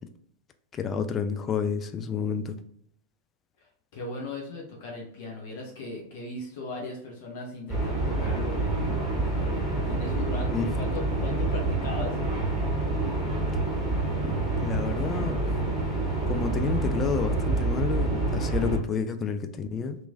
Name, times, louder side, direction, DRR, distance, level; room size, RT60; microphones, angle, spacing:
voice 1, 0.7-2.6 10.5-10.7 14.2-15.4 16.3-20.0, left 6 dB, 25° left, 8 dB, 0.3 m, -30 dB
voice 2, 3.9-12.2, left 2 dB, 50° left, -1 dB, 0.7 m, -38 dB
sound 1, 7.7-18.8, right 2 dB, 5° left, 1.3 m, -27 dB
2.9 x 2.6 x 2.3 m, 0.70 s
figure-of-eight pair, 90°, 0 cm